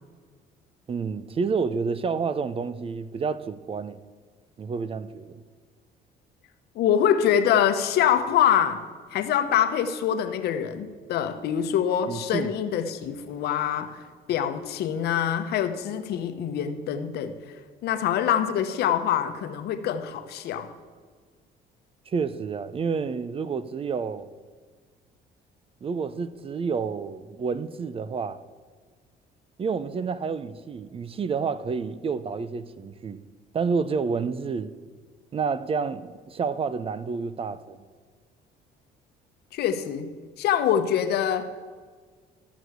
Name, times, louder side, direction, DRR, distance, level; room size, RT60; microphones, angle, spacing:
voice 1, 0.9-4.0 4.6-5.4 12.1-12.5 22.1-24.3 25.8-28.4 29.6-33.2 33.5-34.7 35.3-37.8, right 5 dB, 35° right, 0.6 m, -29 dB
voice 2, 6.7-14.0 14.3-17.4 17.8-20.7 39.5-40.1 40.4-41.5, left 9 dB, 75° left, 1.1 m, -25 dB
14.5 x 6.3 x 8.1 m
cardioid pair, 110°, 17 cm